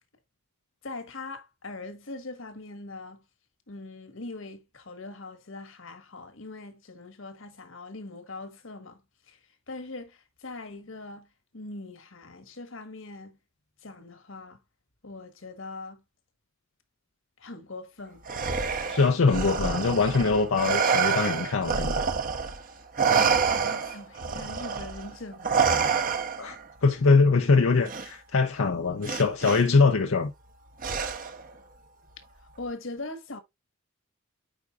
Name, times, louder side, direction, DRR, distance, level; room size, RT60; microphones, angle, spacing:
voice 1, 0.8-3.2 3.7-9.0 9.3-9.4 9.7-11.3 11.5-13.4 13.8-14.6 15.0-16.0 17.4-18.2 23.0-25.6 32.6-33.4, left 2 dB, 70° left, 1.5 m, -41 dB
Respiratory sounds, 18.3-22.6 23.0-26.6 27.9-28.1 29.0-29.6 30.8-31.5, right 6 dB, 40° right, 0.9 m, -27 dB
voice 2, 18.9-22.1 26.4-26.6 26.8-30.3, left 4 dB, 90° left, 0.7 m, -22 dB
8.9 x 4.8 x 2.5 m
head